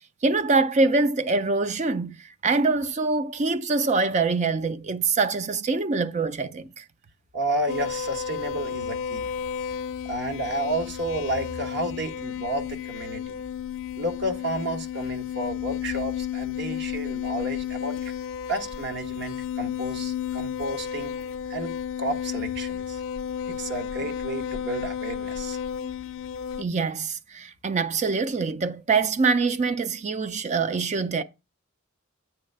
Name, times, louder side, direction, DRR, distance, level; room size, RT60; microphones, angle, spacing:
voice 1, 0.2-2.2 2.4-6.8 23.5-23.6 26.6-31.2, right 4 dB, 35° right, 0.4 m, -24 dB
voice 2, 7.3-9.3 10.1-13.3 14.0-18.1 18.5-21.1 21.5-23.0 23.5-25.6, right 1 dB, 55° right, 1.1 m, -31 dB
sound 1, 7.7-26.6, left 8 dB, 70° left, 0.5 m, -32 dB
8.7 x 3.2 x 6.5 m
head